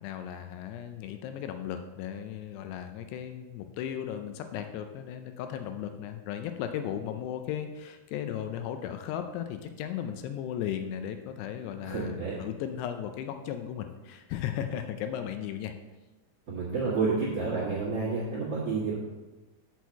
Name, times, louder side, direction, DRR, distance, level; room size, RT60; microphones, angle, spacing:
voice 1, 0.0-15.7, left 9 dB, 80° left, 7 dB, 2.6 m, -36 dB
voice 2, 11.8-12.4 16.5-18.9, right 4 dB, 50° right, -7 dB, 1.8 m, -30 dB
6.3 x 6.2 x 7.0 m, 1.1 s
omnidirectional pair, 5.0 m